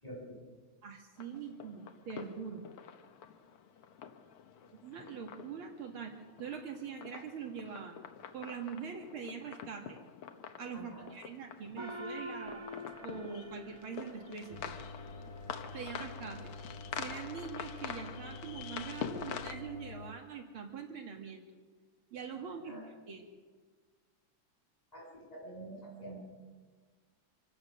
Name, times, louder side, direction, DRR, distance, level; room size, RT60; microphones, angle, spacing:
voice 1, 0.0-0.4 10.7-11.1 22.6-22.8 24.9-26.2, right 1 dB, 15° left, -4 dB, 7.3 m, -47 dB
voice 2, 0.8-2.6 4.8-8.0 8.3-10.0 10.6-12.7 13.0-14.6 15.7-16.5 16.9-21.4 22.1-23.3, right 6 dB, 70° right, 3 dB, 2.6 m, -43 dB
sound 1, 1.2-19.5, left 8 dB, 80° left, 2.0 m, -47 dB
Gong, 11.8-14.7, right 1 dB, 20° right, 0.9 m, -45 dB
sound 2, 14.5-20.1, left 2 dB, 40° left, 0.4 m, -47 dB
26.5 x 16.0 x 6.4 m, 1.5 s
omnidirectional pair, 2.4 m